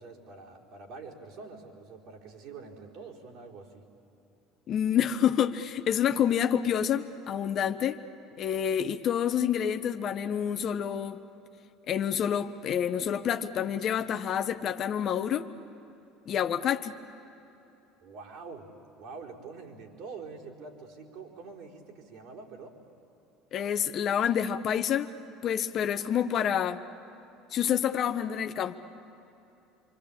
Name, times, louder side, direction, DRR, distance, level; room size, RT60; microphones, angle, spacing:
voice 1, 0.0-3.8 18.0-18.7 19.0-22.8, right 4 dB, 60° right, -3 dB, 4.2 m, -45 dB
voice 2, 4.7-8.0 8.4-11.2 11.9-15.5 16.3-16.9 23.5-25.1 25.4-26.8 27.5-28.8, left 9 dB, 45° left, 10 dB, 0.9 m, -28 dB
27.0 x 25.0 x 8.6 m, 2.9 s
hypercardioid pair, 70°, 0 cm